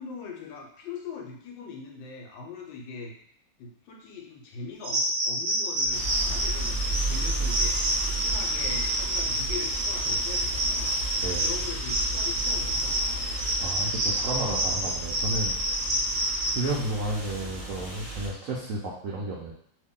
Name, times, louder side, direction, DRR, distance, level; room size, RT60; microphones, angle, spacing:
voice 1, 0.0-3.1 3.6-13.2, left 5 dB, 80° left, 1 dB, 1.4 m, -41 dB
sound 1, 4.8-16.6, right 1 dB, 50° right, 0.9 m, -28 dB
sound 2, 5.8-12.6, right 8 dB, 50° left, 1.0 m, -44 dB
sound 3, 5.9-18.3, right 1 dB, 15° left, 0.8 m, -34 dB
voice 2, 11.2-11.5 13.6-15.5 16.5-19.5, right 2 dB, 85° right, -3 dB, 0.7 m, -32 dB
2.9 x 2.7 x 3.6 m, 0.68 s
omnidirectional pair, 2.1 m